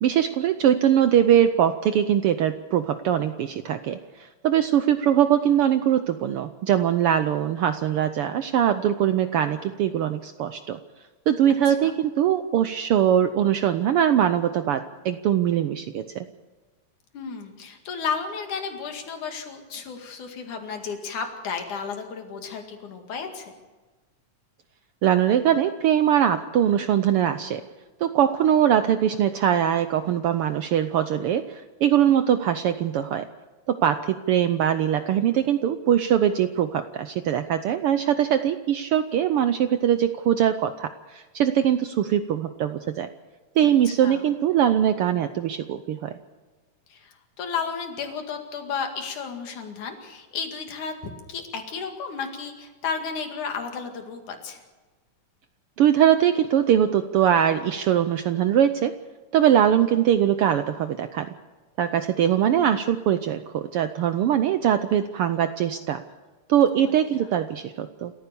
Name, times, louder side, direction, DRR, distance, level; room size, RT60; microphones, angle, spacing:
voice 1, 0.0-10.8 11.3-16.3 25.0-27.6 28.0-33.3 33.7-43.1 43.6-46.1 55.8-58.9 59.3-61.3 61.8-66.0 66.5-68.1, right 10 dB, 80° right, 10 dB, 1.2 m, -22 dB
voice 2, 17.1-23.5 43.6-44.2 46.9-54.6 62.5-62.7 66.7-66.9, left 6 dB, 80° left, 5 dB, 3.7 m, -33 dB
27.5 x 14.5 x 6.9 m, 1.3 s
omnidirectional pair, 3.5 m